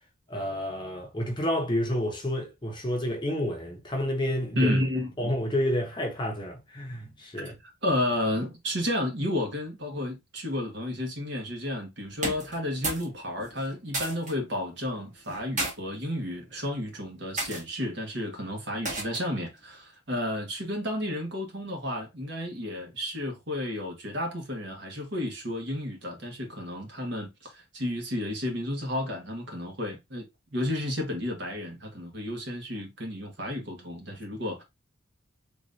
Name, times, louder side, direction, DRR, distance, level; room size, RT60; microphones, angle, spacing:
voice 1, 0.3-4.7 5.2-7.6, left 1 dB, 20° left, 0.7 m, -30 dB
voice 2, 4.5-5.3 7.8-30.3 30.5-34.6, left 1 dB, 60° right, 1.3 m, -32 dB
sound 1, 12.1-13.1 13.4-14.3 15.2-15.7 16.5-16.8 17.4-17.6 18.8-19.3, right 2 dB, 35° right, 1.4 m, -32 dB
3.5 x 3.0 x 2.6 m
head